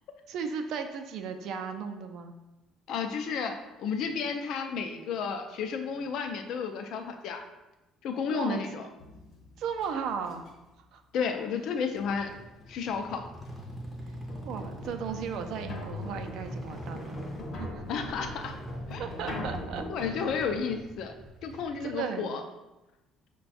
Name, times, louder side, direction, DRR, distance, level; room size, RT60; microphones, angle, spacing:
voice 1, 0.3-2.3 8.3-8.6 9.6-10.4 10.9-11.0 14.4-17.2 17.6-17.8 19.0-20.5 21.8-22.3, right 6 dB, 65° right, 6 dB, 0.4 m, -36 dB
voice 2, 2.9-7.4 8.0-8.9 11.1-12.3 12.7-13.2 17.9-18.6 18.9-19.0 19.9-21.1 21.4-22.4, left 6 dB, 60° left, 6 dB, 0.5 m, -32 dB
sound 1, 9.0-10.7 13.5-13.6 14.3-20.8, left 1 dB, 45° left, 0.8 m, -42 dB
sound 2, 12.0-22.0, equal, 5° left, 0.6 m, -43 dB
5.4 x 2.2 x 4.1 m, 1.0 s
cardioid pair, 150°, 0 cm